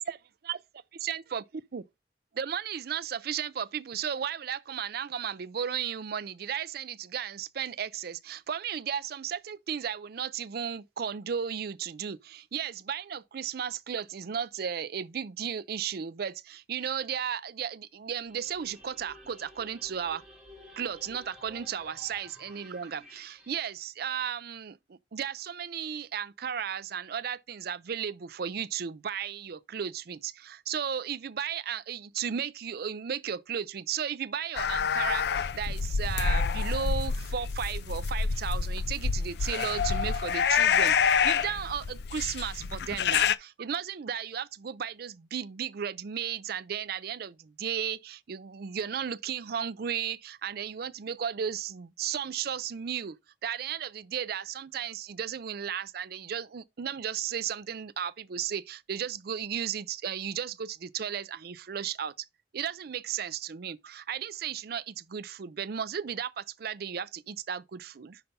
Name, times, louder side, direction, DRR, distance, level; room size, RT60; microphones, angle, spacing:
voice 1, 1.0-1.4 1.7-1.8 2.3-20.2 20.8-53.2 53.4-62.3 62.5-68.2, right 8 dB, 60° right, 0.4 m, -34 dB
sound 1, 18.1-23.6, left 1 dB, 5° right, 3.4 m, -52 dB
sound 2, 34.5-43.3, left 6 dB, 65° left, 0.4 m, -27 dB
5.8 x 5.4 x 5.3 m
head